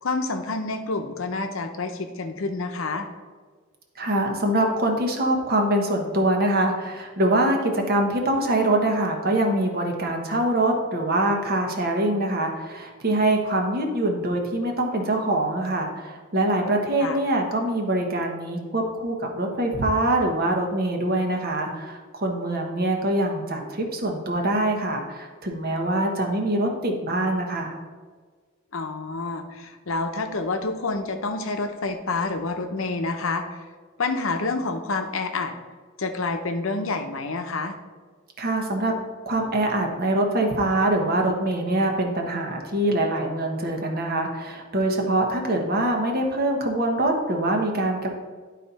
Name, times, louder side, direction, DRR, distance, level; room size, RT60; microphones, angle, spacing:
voice 1, 0.0-3.1 17.0-17.2 28.7-33.4 34.0-35.5 36.0-37.8, left 3 dB, 80° left, 6 dB, 0.8 m, -28 dB
voice 2, 4.0-27.8 38.4-38.9 39.3-48.1, right 1 dB, 50° right, 2 dB, 1.1 m, -24 dB
11.0 x 4.2 x 4.1 m, 1.5 s
head